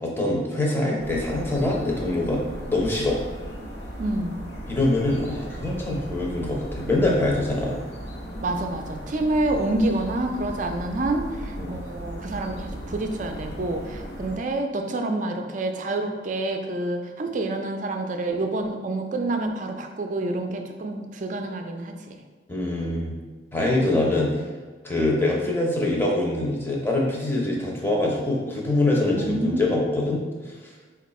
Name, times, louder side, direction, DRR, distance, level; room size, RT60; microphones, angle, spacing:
voice 1, 0.0-2.4 2.7-3.2 4.7-7.8 11.6-11.8 22.5-23.1 23.5-24.3 24.8-30.2, left 2 dB, 10° left, -3 dB, 0.6 m, -24 dB
sound 1, 1.0-14.4, equal, 65° left, 0.8 m, -36 dB
voice 2, 4.0-4.5 8.4-22.2 29.1-29.7, right 2 dB, 45° right, 5 dB, 0.4 m, -28 dB
4.3 x 2.3 x 4.1 m, 1.4 s
head